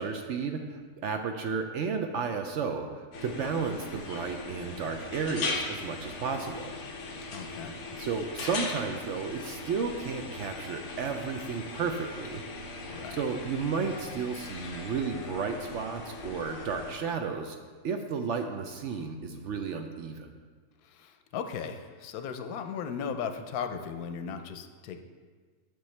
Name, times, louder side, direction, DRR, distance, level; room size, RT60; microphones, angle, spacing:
voice 1, 0.0-2.9 3.2-6.7 8.0-12.4 13.2-17.6 17.8-20.3, right 5 dB, 65° right, 5 dB, 0.7 m, -33 dB
sound 1, 3.1-16.9, left 3 dB, 55° left, 1.2 m, -39 dB
voice 2, 7.3-7.7 12.9-13.2 20.8-25.0, left 6 dB, 90° left, 7 dB, 1.1 m, -37 dB
10.0 x 6.2 x 3.2 m, 1.6 s
omnidirectional pair, 1.6 m